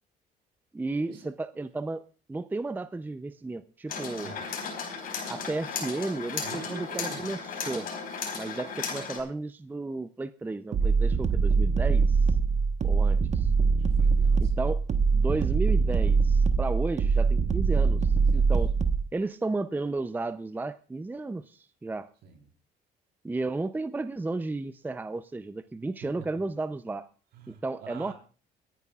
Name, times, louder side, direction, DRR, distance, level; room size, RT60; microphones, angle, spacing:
voice 1, 0.7-2.0 2.3-4.3 5.3-7.4 7.7-7.9 8.3-12.2 12.8-13.5 14.6-14.8 15.1-18.7 19.1-22.1 23.2-27.1 27.5-28.1, right 3 dB, 10° right, 12 dB, 0.5 m, -33 dB
sound 1, 3.9-9.2, left 5 dB, 60° left, 4.2 m, -35 dB
voice 2, 6.4-7.3 13.8-14.7 18.2-18.6 22.2-22.5 27.3-28.1, right 6 dB, 75° right, 2 dB, 4.1 m, -46 dB
sound 2, 10.7-19.1, right 5 dB, 45° right, 1.1 m, -23 dB
27.0 x 9.8 x 2.4 m, 0.38 s
cardioid pair, 110°, 17 cm